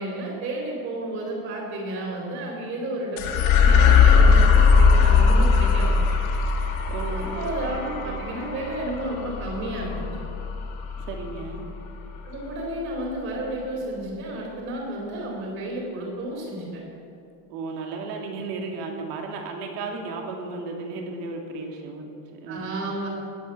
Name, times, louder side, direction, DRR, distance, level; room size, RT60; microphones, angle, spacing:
voice 1, 0.0-5.9 7.2-10.0 12.2-16.8 22.5-23.1, right 1 dB, 35° right, -3 dB, 4.5 m, -32 dB
sound 1, 3.2-11.8, left 5 dB, 60° left, 2.4 m, -19 dB
voice 2, 6.9-7.5 8.0-8.4 11.0-11.7 17.5-22.8, right 3 dB, 85° right, 1 dB, 2.9 m, -34 dB
20.0 x 8.6 x 7.9 m, 2.6 s
cardioid pair, 170°, 47 cm